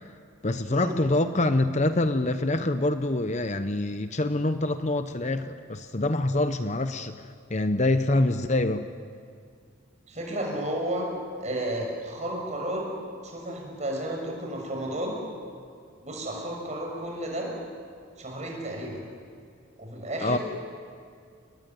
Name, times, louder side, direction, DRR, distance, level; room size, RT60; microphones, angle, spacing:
voice 1, 0.4-7.2 7.5-8.9 20.2-20.4, left 2 dB, 35° left, 9 dB, 0.8 m, -25 dB
voice 2, 10.1-11.1 11.4-12.9 13.2-15.2 16.0-17.5 18.2-19.0 19.8-20.4, right 1 dB, 35° right, 0 dB, 6.7 m, -32 dB
29.0 x 20.5 x 9.4 m, 2.3 s
head